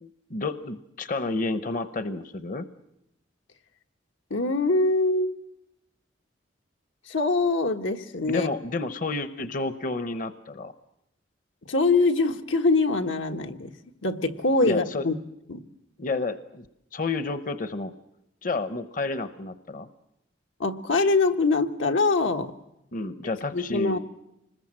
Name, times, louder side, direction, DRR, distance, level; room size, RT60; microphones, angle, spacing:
voice 1, 0.0-2.7 8.3-10.7 14.6-15.1 16.0-16.6 16.9-17.9 18.4-19.9 22.9-24.0, left 3 dB, 45° left, 12 dB, 0.8 m, -30 dB
voice 2, 4.3-5.3 7.1-8.5 11.7-13.7 14.0-15.1 15.5-15.6 20.6-22.5 23.5-24.0, left 3 dB, 85° left, 5 dB, 1.4 m, -23 dB
26.0 x 20.5 x 7.6 m, 0.84 s
head